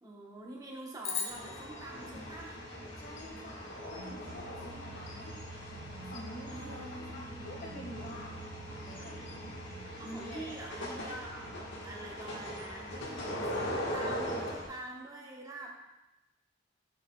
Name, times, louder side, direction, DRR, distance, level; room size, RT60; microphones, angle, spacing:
voice 1, 0.0-2.6 6.5-7.4 9.2-9.4 10.0-11.5 11.8-15.7, right 1 dB, 20° right, -2 dB, 1.0 m, -46 dB
sound 1, 1.0-3.5, left 5 dB, 35° left, 1.0 m, -41 dB
sound 2, 1.3-14.7, equal, 70° left, 1.4 m, -41 dB
voice 2, 3.0-5.4 6.0-8.3 8.8-9.2 10.0-10.5, left 1 dB, 50° left, -2 dB, 1.6 m, -47 dB
sound 3, 3.7-12.5, right 3 dB, 65° right, 0.5 m, -50 dB
8.2 x 5.4 x 2.3 m, 1.0 s
head